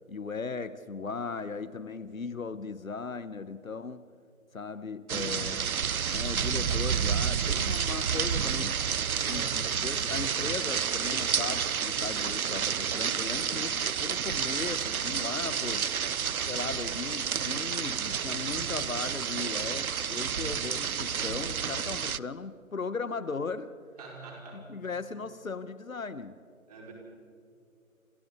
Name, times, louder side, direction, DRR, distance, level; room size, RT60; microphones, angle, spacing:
voice 1, 0.1-4.0 4.5-5.6 6.1-8.8 9.3-16.0 16.4-23.7 24.5-26.4, left 4 dB, 70° left, 14 dB, 1.2 m, -37 dB
voice 2, 5.1-5.4 9.1-9.5 24.0-24.7 26.7-26.9, right 4 dB, 25° right, -2 dB, 5.2 m, -45 dB
sound 1, 5.1-22.2, right 7 dB, 80° right, 0.6 m, -30 dB
29.0 x 28.5 x 4.0 m, 2.4 s
figure-of-eight pair, 160°, 42 cm